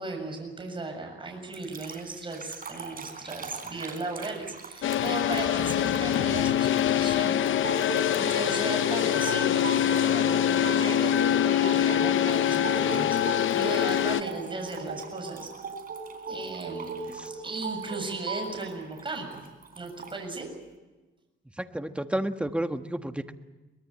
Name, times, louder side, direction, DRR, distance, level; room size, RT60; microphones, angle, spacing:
voice 1, 0.0-7.4 8.1-15.5 16.3-17.1 17.4-19.4 19.8-20.5, right 3 dB, 25° right, 2 dB, 7.2 m, -36 dB
sound 1, 1.5-8.5 9.1-10.0 10.4-10.7 12.3-20.2, right 5 dB, 45° right, 3.8 m, -46 dB
sound 2, 4.8-14.2, left 11 dB, 80° left, 0.7 m, -24 dB
sound 3, 7.5-18.5, right 4 dB, 65° right, 5.4 m, -38 dB
voice 2, 17.1-17.4 21.6-23.3, right 1 dB, 5° right, 7 dB, 1.4 m, -31 dB
24.0 x 21.5 x 8.6 m, 1.2 s
cardioid pair, 110°, 20 cm